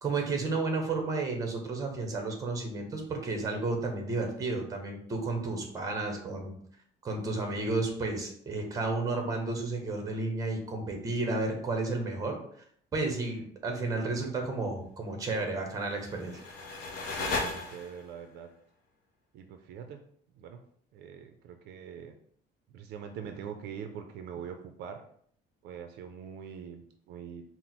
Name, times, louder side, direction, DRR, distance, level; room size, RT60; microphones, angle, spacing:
voice 1, 0.0-6.5 7.0-12.4 12.9-16.4, right 3 dB, 20° right, 3 dB, 0.8 m, -32 dB
sound 1, 15.8-18.2, left 3 dB, 60° left, 0.7 m, -36 dB
voice 2, 17.1-18.5 19.3-20.1 20.3-20.6 20.9-22.1 22.7-25.0 25.6-27.4, right 7 dB, 65° right, 6 dB, 0.4 m, -43 dB
4.3 x 2.0 x 4.0 m, 0.63 s
cardioid pair, 175°, 18 cm